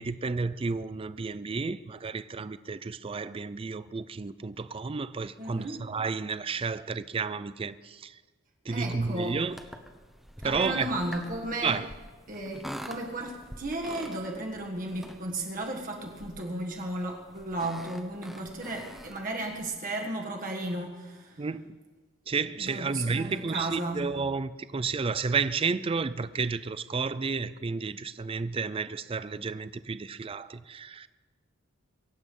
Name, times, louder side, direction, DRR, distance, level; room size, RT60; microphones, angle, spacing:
voice 1, 0.0-8.2 8.7-9.6 10.4-10.9 11.6-11.9 21.4-21.8 22.3-31.1, right 4 dB, 25° right, 0.4 m, -31 dB
voice 2, 5.4-5.8 8.7-9.4 10.4-11.8 12.3-21.5 22.6-24.1, right 1 dB, 40° right, 1.6 m, -34 dB
sound 1, 8.8-19.7, equal, ahead, 1.0 m, -46 dB
23.5 x 8.4 x 5.4 m
head